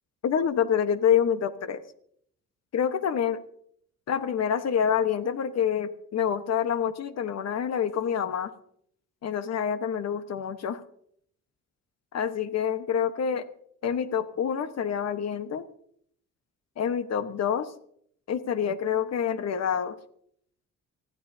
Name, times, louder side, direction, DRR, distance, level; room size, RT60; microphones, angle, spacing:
voice 1, 0.2-1.8 2.7-3.4 4.1-8.5 9.2-10.8 12.1-13.5 13.8-15.6 16.8-17.7 18.3-20.0, left 8 dB, 60° left, 11 dB, 1.3 m, -27 dB
25.5 x 15.0 x 2.8 m, 0.67 s
cardioid pair, 90°, 30 cm